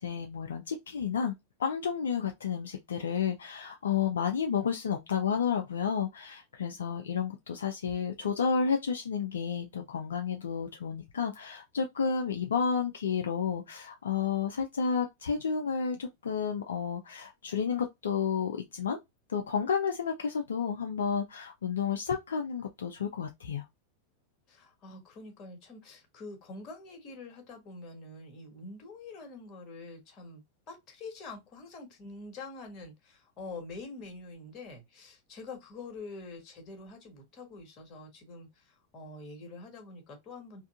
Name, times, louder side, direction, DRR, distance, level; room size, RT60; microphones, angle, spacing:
voice 1, 0.0-1.3 1.6-19.0 19.3-23.6, left 6 dB, 65° left, 0.4 m, -31 dB
voice 2, 24.5-40.6, left 3 dB, 35° left, 1.3 m, -46 dB
3.5 x 2.6 x 2.4 m
figure-of-eight pair, 90°, 0 cm